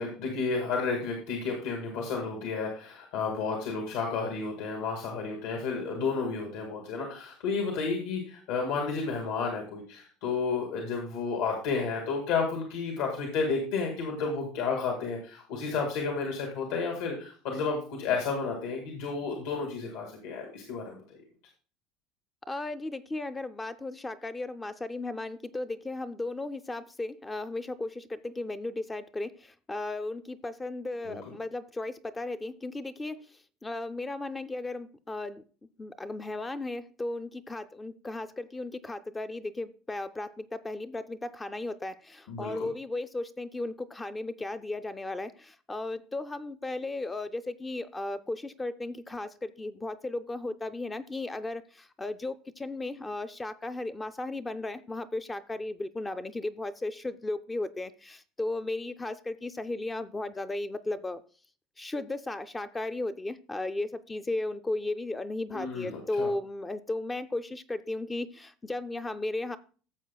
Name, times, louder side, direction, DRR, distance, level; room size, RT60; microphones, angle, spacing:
voice 1, 0.0-21.0 31.0-31.3 42.3-42.7 65.5-66.3, left 4 dB, 70° left, 1 dB, 2.0 m, -32 dB
voice 2, 22.5-29.3 29.7-33.2 33.6-35.4 35.8-61.2 61.8-69.6, left 2 dB, 10° left, 12 dB, 0.4 m, -35 dB
14.0 x 7.2 x 2.2 m, 0.39 s
cardioid pair, 165°, 0 cm